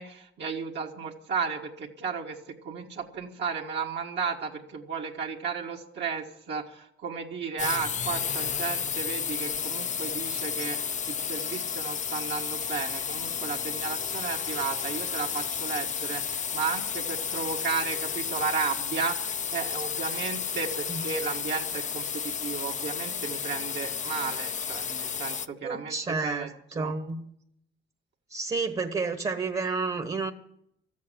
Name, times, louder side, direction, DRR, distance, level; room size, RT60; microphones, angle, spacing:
voice 1, 0.0-26.5 26.8-26.9, right 5 dB, 65° right, -1 dB, 1.7 m, -34 dB
sound 1, 7.6-25.5, left 7 dB, 40° left, 0.6 m, -32 dB
voice 2, 25.6-27.3 28.3-30.3, right 4 dB, 30° right, 6 dB, 1.2 m, -30 dB
13.5 x 8.4 x 9.8 m, 0.76 s
cardioid pair, 90°, 20 cm